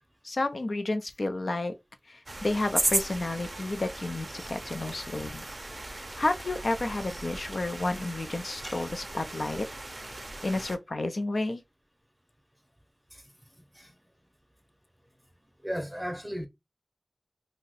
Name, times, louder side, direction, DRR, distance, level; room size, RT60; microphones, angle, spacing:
voice 1, 0.2-1.7 2.1-5.5 5.8-9.7 10.4-11.6, left 2 dB, 85° left, 0.5 m, -31 dB
sound 1, 2.3-10.8, right 2 dB, 55° right, 0.4 m, -36 dB
voice 2, 13.6-13.9 15.6-16.5, equal, 15° right, 0.6 m, -36 dB
2.7 x 2.1 x 3.9 m
wide cardioid pair, 40°, 0 cm